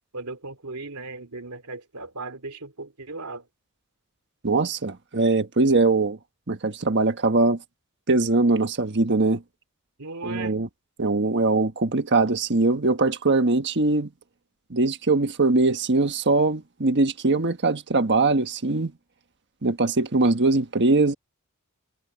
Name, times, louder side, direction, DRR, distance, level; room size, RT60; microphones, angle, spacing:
voice 1, 0.1-3.5 10.0-10.6, right 3 dB, 85° right, 2.8 m, -37 dB
voice 2, 4.4-6.2 6.5-7.6 8.1-9.4 10.2-10.7 11.0-14.1 14.7-18.9 19.6-21.1, right 3 dB, 50° right, 1.4 m, -21 dB
head